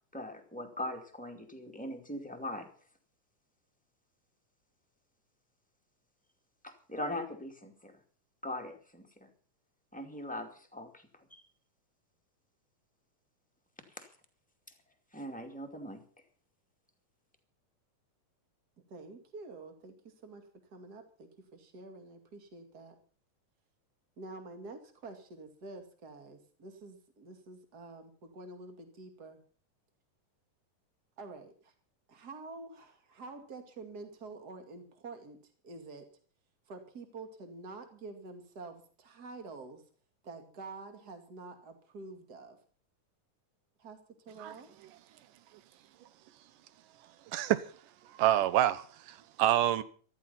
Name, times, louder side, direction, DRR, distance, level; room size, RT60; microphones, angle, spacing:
voice 1, 0.1-2.7 6.6-7.9 8.4-9.3 9.9-11.0 11.3-11.4 14.0-14.1 15.1-16.0, left 1 dB, 5° left, 1.8 m, -40 dB
voice 2, 18.9-22.9 24.2-29.4 31.2-31.7 32.1-36.0 36.7-39.8 40.2-42.6 43.8-44.7, right 3 dB, 30° right, 2.5 m, -48 dB
voice 3, 47.3-47.7 48.2-49.8, right 13 dB, 85° right, 2.5 m, -27 dB
14.5 x 14.0 x 5.7 m
omnidirectional pair, 3.7 m